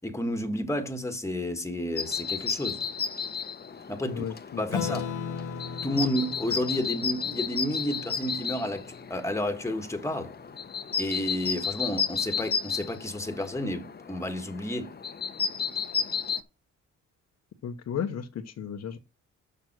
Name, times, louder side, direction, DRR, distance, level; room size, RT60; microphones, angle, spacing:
voice 1, 0.0-2.8 3.9-4.2 4.6-5.1 5.8-10.3 11.0-14.9, left 1 dB, 10° left, 1.6 m, -31 dB
sound 1, 2.0-16.4, left 6 dB, 35° left, 0.9 m, -33 dB
voice 2, 4.0-4.6 17.6-19.0, left 8 dB, 60° left, 1.1 m, -34 dB
Acoustic guitar / Strum, 4.7-9.5, left 6 dB, 85° left, 1.8 m, -37 dB
6.8 x 5.9 x 6.1 m
cardioid pair, 90°, 30 cm